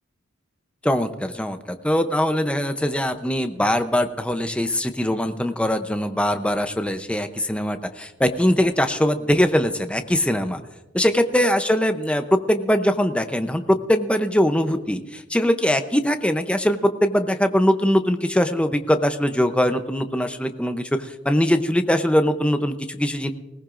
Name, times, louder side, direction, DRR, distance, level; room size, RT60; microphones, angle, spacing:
voice 1, 0.8-10.6 10.9-23.3, equal, 5° left, 8 dB, 0.6 m, -22 dB
20.0 x 18.0 x 2.5 m, 1.0 s
head